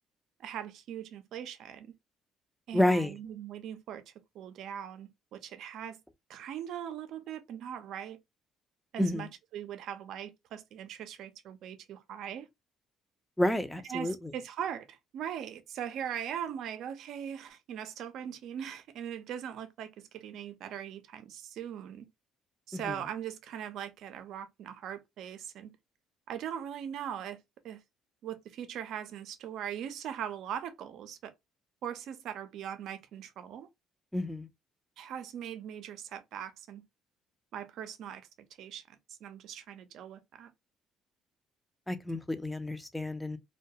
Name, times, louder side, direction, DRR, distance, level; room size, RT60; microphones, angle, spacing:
voice 1, 0.4-1.9 2.7-6.0 6.3-8.2 8.9-12.5 13.9-22.1 22.7-25.7 26.3-27.4 27.6-27.8 28.2-31.3 31.8-33.7 35.0-36.8 37.5-38.3 38.6-40.5, right 9 dB, 70° right, 0.4 m, -40 dB
voice 2, 2.7-3.1 9.0-9.3 13.4-14.3 22.7-23.0 34.1-34.5 41.9-43.4, left 1 dB, 5° left, 0.4 m, -30 dB
2.2 x 2.2 x 2.7 m
cardioid pair, 100°, 0 cm